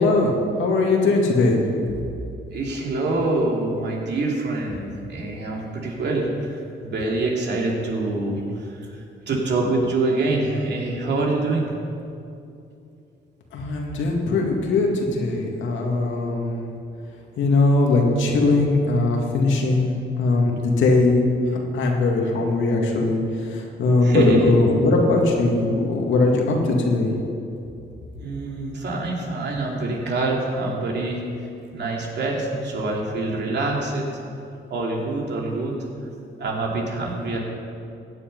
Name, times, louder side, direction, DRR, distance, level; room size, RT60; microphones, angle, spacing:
voice 1, 0.0-1.6 13.5-16.7 17.4-27.1, left 2 dB, 75° left, 0 dB, 2.3 m, -20 dB
voice 2, 2.5-11.7 20.5-20.6 24.0-24.5 28.2-31.2 31.7-34.1 34.7-35.7 36.4-37.4, right 2 dB, 60° right, -2 dB, 2.8 m, -25 dB
15.5 x 8.7 x 5.5 m, 2.6 s
cardioid pair, 90°, 20 cm